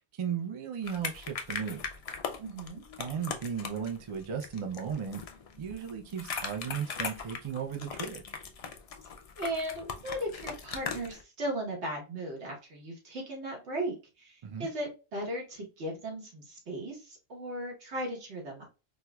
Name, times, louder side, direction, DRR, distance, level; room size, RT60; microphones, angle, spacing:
voice 1, 0.1-1.8 3.0-5.2 5.6-8.2 14.4-14.7, right 7 dB, 50° right, 0.3 m, -35 dB
sound 1, 0.8-11.2, left 5 dB, 60° left, 0.3 m, -40 dB
voice 2, 2.4-2.8 9.4-18.7, right 1 dB, 80° right, 1.4 m, -37 dB
4.4 x 2.2 x 2.2 m
omnidirectional pair, 1.1 m